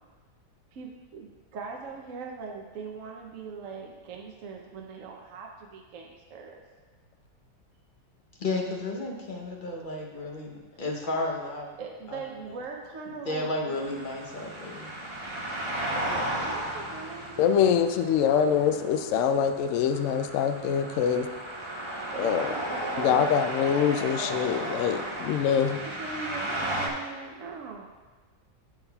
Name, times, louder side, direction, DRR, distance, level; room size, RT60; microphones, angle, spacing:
voice 1, 0.7-6.6 11.8-13.9 16.3-19.0 22.1-23.7 25.6-27.9, right 5 dB, 60° right, 0 dB, 1.0 m, -41 dB
voice 2, 8.4-11.7 12.1-12.2 12.5-12.6 13.1-14.9, left 2 dB, 40° left, 0 dB, 0.8 m, -33 dB
sound 1, 13.7-26.9, right 1 dB, 30° right, 0.5 m, -34 dB
voice 3, 17.4-21.3 22.2-22.5 23.0-25.8, left 8 dB, 75° left, 8 dB, 0.7 m, -24 dB
10.5 x 7.1 x 2.3 m, 1.3 s
omnidirectional pair, 1.8 m